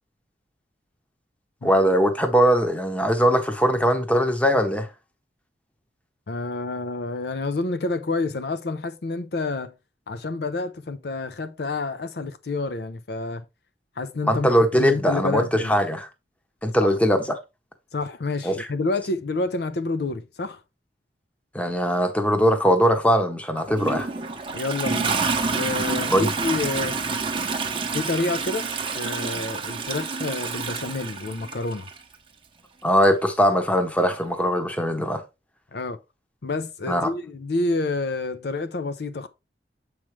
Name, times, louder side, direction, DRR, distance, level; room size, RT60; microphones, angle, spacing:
voice 1, 1.6-4.9 14.3-16.1 16.6-17.4 18.4-18.6 21.5-24.1 26.1-26.3 32.8-35.2 36.9-37.1, equal, 10° left, 0.9 m, -21 dB
voice 2, 6.3-9.7 10.1-13.5 14.0-15.7 16.8-16.9 17.9-20.6 24.5-25.2 25.5-27.0 27.9-28.7 28.9-31.9 35.7-36.0 36.4-39.3, left 3 dB, 60° left, 0.5 m, -28 dB
Toilet flush, 23.6-32.0 33.0-33.1, right 4 dB, 30° right, 0.8 m, -28 dB
7.4 x 4.8 x 3.1 m
head